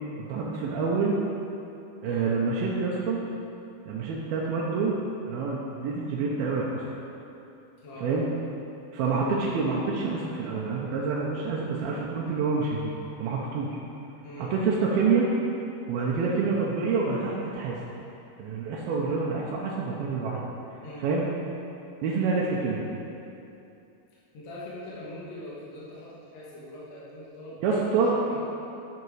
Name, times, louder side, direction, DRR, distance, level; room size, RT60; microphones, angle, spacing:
voice 1, 0.2-1.2 2.0-3.2 3.9-4.9 5.3-6.8 8.0-8.3 8.9-12.9 13.2-13.8 14.4-15.3 15.9-17.7 18.4-20.4 21.0-21.3 22.0-22.9 27.6-28.1, right 4 dB, 75° right, -4 dB, 2.5 m, -27 dB
voice 2, 24.3-27.7 28.1-28.4, left 1 dB, 50° left, -8 dB, 2.2 m, -42 dB
10.5 x 6.0 x 4.7 m, 2.7 s
omnidirectional pair, 4.7 m